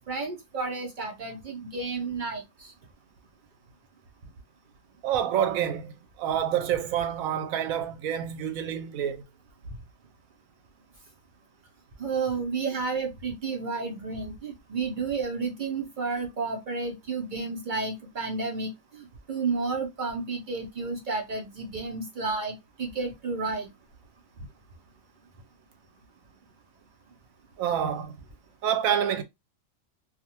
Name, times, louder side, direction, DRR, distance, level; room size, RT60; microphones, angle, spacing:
voice 1, 0.1-2.7 12.0-23.7, right 4 dB, 55° right, 0.6 m, -31 dB
voice 2, 5.0-9.2 27.6-28.2 28.6-29.2, right 9 dB, 90° right, 1.0 m, -28 dB
2.4 x 2.4 x 2.8 m
omnidirectional pair, 1.4 m